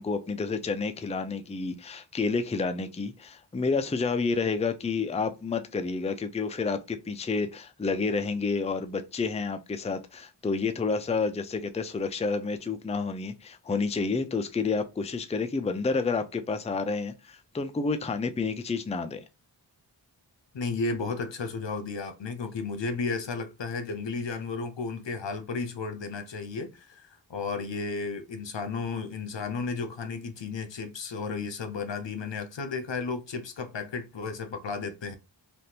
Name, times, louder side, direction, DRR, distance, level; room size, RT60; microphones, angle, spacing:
voice 1, 0.0-19.2, left 4 dB, 15° left, 0.4 m, -29 dB
voice 2, 20.5-35.2, left 4 dB, 75° left, 0.7 m, -33 dB
3.4 x 2.5 x 2.8 m
wide cardioid pair, 45°, 44 cm